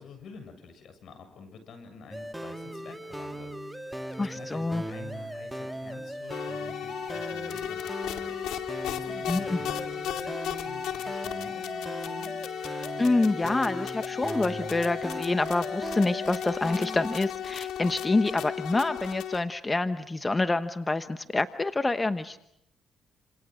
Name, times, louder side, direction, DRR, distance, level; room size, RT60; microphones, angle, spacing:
voice 1, 0.0-12.4, left 5 dB, 70° left, 8 dB, 7.1 m, -48 dB
sound 1, 2.1-17.2, right 1 dB, 5° right, 1.7 m, -38 dB
voice 2, 4.2-4.8 9.3-9.6 13.0-22.4, left 2 dB, 20° left, 10 dB, 1.1 m, -27 dB
sound 2, 6.3-19.4, left 10 dB, 90° left, 2.3 m, -35 dB
29.0 x 27.5 x 6.4 m, 0.75 s
cardioid pair, 90°, 0 cm